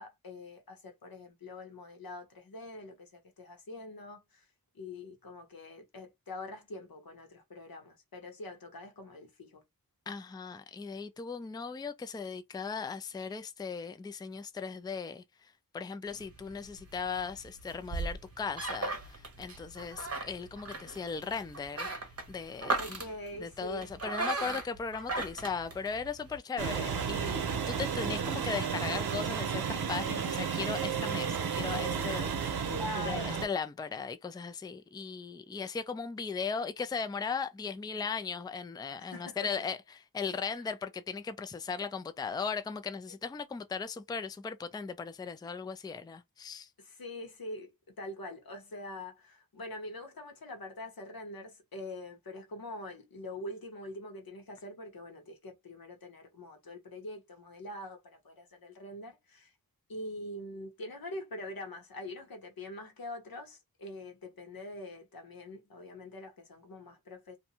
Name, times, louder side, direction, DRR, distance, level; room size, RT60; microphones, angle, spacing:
voice 1, 0.0-4.5 4.7-9.6 22.7-23.9 32.7-33.4 39.0-39.7 40.6-40.7 46.8-47.7 48.0-59.5 59.9-67.4, left 1 dB, 70° left, 1.0 m, -44 dB
voice 2, 10.1-15.2 15.7-21.9 22.3-23.0 23.4-32.7 33.0-46.7, left 5 dB, 10° left, 0.3 m, -37 dB
sound 1, 16.1-26.4, right 3 dB, 40° right, 0.8 m, -38 dB
sound 2, 26.6-33.5, right 6 dB, 80° right, 0.7 m, -33 dB
2.6 x 2.2 x 2.8 m
wide cardioid pair, 100°, 37 cm